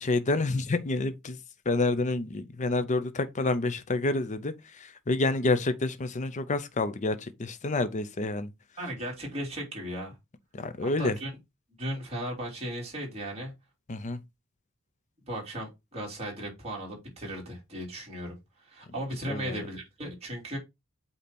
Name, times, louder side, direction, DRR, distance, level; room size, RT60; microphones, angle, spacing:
voice 1, 0.0-1.4 1.7-8.5 10.5-11.2 13.9-14.2 19.3-19.6, left 2 dB, 35° left, 0.6 m, -28 dB
voice 2, 8.8-10.1 10.8-11.3 11.8-13.5 15.3-20.6, right 1 dB, 30° right, 2.9 m, -36 dB
8.2 x 2.8 x 4.3 m
head